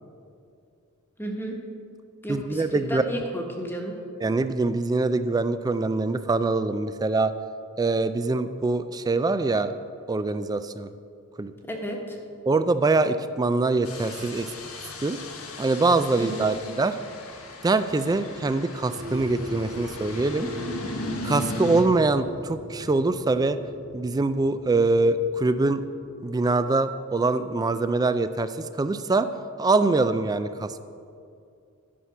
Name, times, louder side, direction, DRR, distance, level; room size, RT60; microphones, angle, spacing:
voice 1, 1.2-1.6 2.2-3.9 11.7-12.2 16.2-16.5, right 1 dB, 10° left, 0 dB, 1.2 m, -32 dB
voice 2, 2.3-3.0 4.2-7.3 7.8-9.7 10.1-10.9 11.4-11.5 12.5-14.5 15.0-15.2 15.6-17.0 17.6-20.5 21.2-23.6 23.9-25.8 26.2-29.3 29.6-30.8, right 3 dB, 20° right, 11 dB, 0.3 m, -24 dB
sound 1, 13.8-21.8, left 2 dB, 75° left, 1.3 m, -37 dB
sound 2, 18.9-26.1, equal, 85° right, 2.6 m, -39 dB
11.0 x 5.7 x 6.0 m, 2.4 s
head